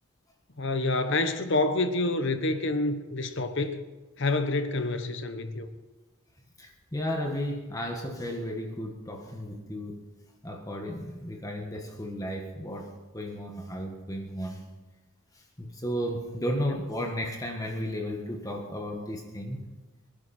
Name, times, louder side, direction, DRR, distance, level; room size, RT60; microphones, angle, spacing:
voice 1, 0.6-3.8 4.2-5.7 16.6-16.7, left 2 dB, 55° left, 1.1 m, -28 dB
voice 2, 6.6-10.0 10.4-14.6 15.3-19.6, equal, 15° left, 1.6 m, -34 dB
24.5 x 10.5 x 4.4 m
head